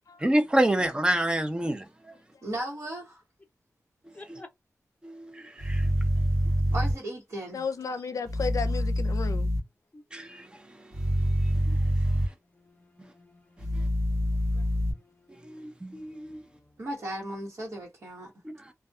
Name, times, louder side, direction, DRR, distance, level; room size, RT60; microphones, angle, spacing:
voice 1, 0.2-2.1 4.3-4.4 5.0-5.9 10.1-11.1 11.4-11.8 15.4-16.4, right 1 dB, 15° right, 0.6 m, -28 dB
voice 2, 2.4-3.2 6.7-7.6 16.8-18.3, right 1 dB, 60° right, 1.1 m, -36 dB
voice 3, 4.1-4.5 9.9-10.0 12.6-15.4 16.1-16.6, left 2 dB, 25° left, 0.7 m, -54 dB
sound 1, 5.6-6.9 8.3-9.6 10.9-12.3 13.6-14.9, equal, 85° right, 1.1 m, -26 dB
voice 4, 7.5-9.5 12.0-12.2 14.5-14.6, left 5 dB, 80° left, 0.4 m, -34 dB
2.6 x 2.2 x 2.3 m
wide cardioid pair, 105°, 6 cm